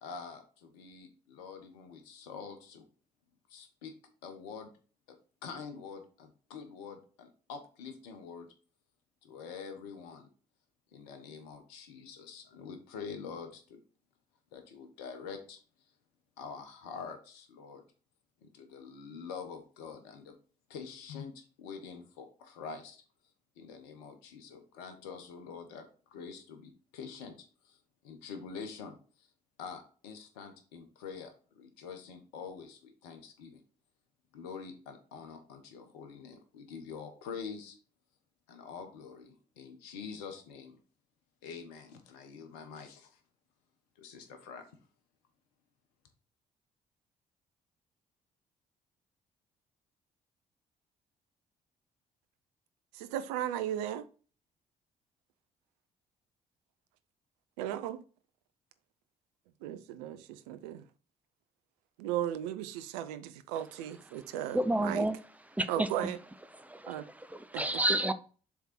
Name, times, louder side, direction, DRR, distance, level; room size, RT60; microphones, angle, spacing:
voice 1, 0.0-2.8 3.5-3.9 4.2-4.7 5.1-5.2 5.4-8.5 9.2-10.3 10.9-13.8 14.5-15.6 16.4-17.8 18.4-20.4 20.7-23.0 23.6-27.8 28.0-29.3 29.6-33.6 34.3-37.8 38.5-40.8 41.4-43.2 44.0-44.7, left 6 dB, 75° left, 1.1 m, -46 dB
voice 2, 53.0-54.0 57.6-58.0 59.6-60.8 62.0-65.1 65.7-66.2 66.9-67.0 67.5-67.8, right 11 dB, 75° right, 0.6 m, -36 dB
voice 3, 64.5-65.2 65.6-65.9 66.6-68.1, right 1 dB, 5° right, 0.7 m, -30 dB
7.1 x 3.7 x 4.3 m
hypercardioid pair, 45°, 20 cm